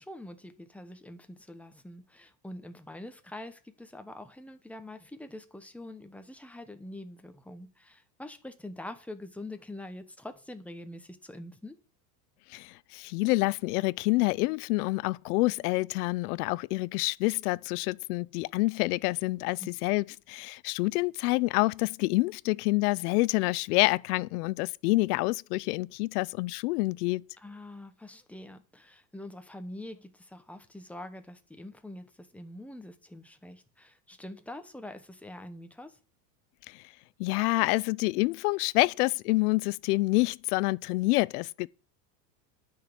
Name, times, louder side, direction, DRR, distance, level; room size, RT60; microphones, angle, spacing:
voice 1, 0.0-11.8 19.6-19.7 27.4-36.0, left 1 dB, 5° left, 0.9 m, -45 dB
voice 2, 12.5-27.2 36.7-36.8 37.2-41.7, left 22 dB, 70° left, 0.6 m, -27 dB
10.0 x 6.3 x 8.5 m
supercardioid pair, 145°, 47 cm